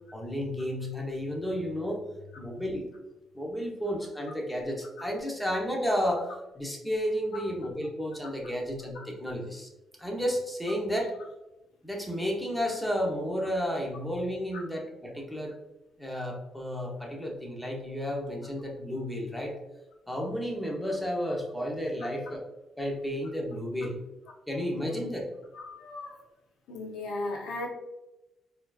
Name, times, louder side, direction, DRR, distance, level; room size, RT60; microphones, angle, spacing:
voice 1, 0.1-2.0 2.4-2.9 3.3-9.7 10.0-11.1 11.8-15.5 16.0-19.5 20.1-22.4 22.8-23.9 24.5-25.3, equal, 5° left, -1 dB, 0.9 m, -32 dB
voice 2, 25.5-26.2 26.7-27.7, left 2 dB, 85° left, 0 dB, 0.7 m, -37 dB
4.2 x 2.7 x 2.4 m, 0.98 s
cardioid pair, 90°, 0 cm